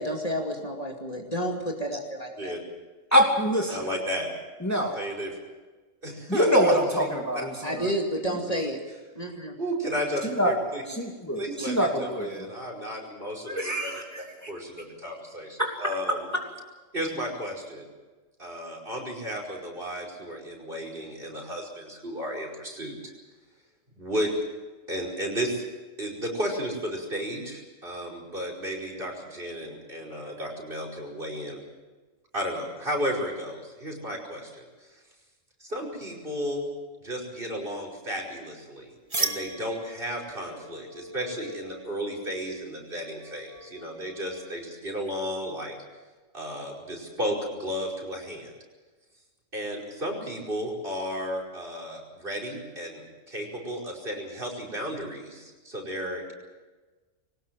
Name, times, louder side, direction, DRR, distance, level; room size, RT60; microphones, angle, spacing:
voice 1, 0.0-2.5 7.6-8.8 9.2-9.5, equal, 30° left, 0 dB, 2.6 m, -30 dB
voice 2, 3.1-3.9 4.6-5.0 6.3-7.9 10.4-10.5 10.9-12.5 13.5-14.5 15.6-16.4, equal, 10° left, 0 dB, 2.8 m, -25 dB
voice 3, 3.7-4.3 4.9-5.3 6.0-6.7 7.0-7.5 9.6-10.8 11.4-13.9 14.2-16.3 16.9-17.9 18.4-23.1 24.0-24.3 24.9-25.6 26.0-31.6 32.3-34.7 35.6-36.7 37.0-45.8 46.3-48.5 49.5-56.3, equal, 45° right, 0 dB, 5.4 m, -33 dB
sound 1, 39.1-44.7, right 2 dB, 30° right, 1.8 m, -38 dB
22.5 x 19.0 x 7.7 m, 1.3 s
omnidirectional pair, 1.3 m